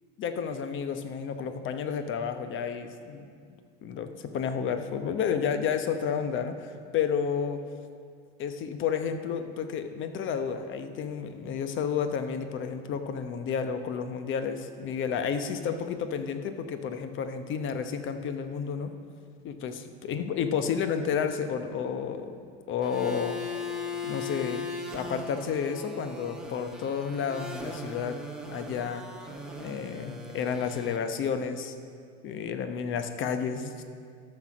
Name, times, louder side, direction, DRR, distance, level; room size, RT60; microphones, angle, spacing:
voice 1, 0.2-3.2 3.8-7.6 8.4-18.9 19.4-23.4 24.0-28.2 28.5-29.1 29.6-31.7 32.2-33.8, left 7 dB, 40° left, 9 dB, 0.9 m, -31 dB
sound 1, 22.8-31.0, left 3 dB, ahead, 1.2 m, -38 dB
13.0 x 6.0 x 6.2 m, 2.2 s
supercardioid pair, 115°, 30 cm